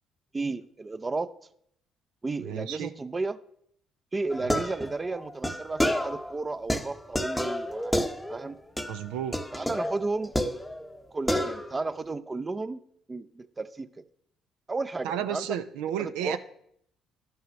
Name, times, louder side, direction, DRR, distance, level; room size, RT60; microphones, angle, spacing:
voice 1, 0.3-1.3 2.2-3.4 4.1-8.6 9.5-10.3 11.1-12.8 13.1-14.0 14.7-15.5 16.0-16.4, right 3 dB, 25° right, 13 dB, 0.5 m, -33 dB
voice 2, 2.4-2.9 8.9-9.4 15.0-16.4, right 10 dB, 85° right, 10 dB, 0.4 m, -32 dB
sound 1, 4.3-6.3 6.7-8.5 8.8-9.0 9.3-11.0 11.3-11.9, equal, 5° left, 0.8 m, -30 dB
11.0 x 5.6 x 5.1 m, 0.70 s
supercardioid pair, 65°, 0 cm